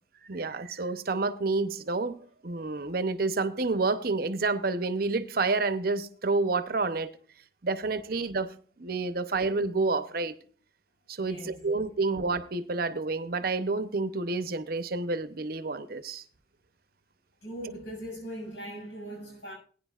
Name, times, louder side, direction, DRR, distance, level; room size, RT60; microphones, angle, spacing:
voice 1, 0.2-7.1 7.6-10.3 11.1-16.2, right 3 dB, 55° right, 0.8 m, -29 dB
voice 2, 11.2-11.6 17.4-19.5, equal, 75° left, 6.8 m, -40 dB
19.5 x 9.7 x 2.4 m
head